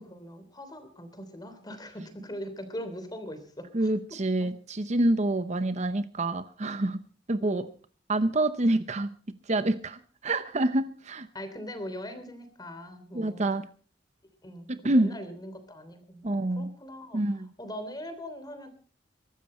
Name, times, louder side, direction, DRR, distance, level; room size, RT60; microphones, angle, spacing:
voice 1, 0.0-3.9 7.4-7.7 11.3-13.5 14.4-17.2 17.6-18.7, equal, 20° left, 9 dB, 3.2 m, -41 dB
voice 2, 3.7-7.7 8.1-9.1 9.5-11.3 13.1-13.7 14.7-15.1 16.2-16.7 17.1-17.5, right 1 dB, 40° right, 12 dB, 0.8 m, -27 dB
22.5 x 13.0 x 4.3 m, 0.41 s
head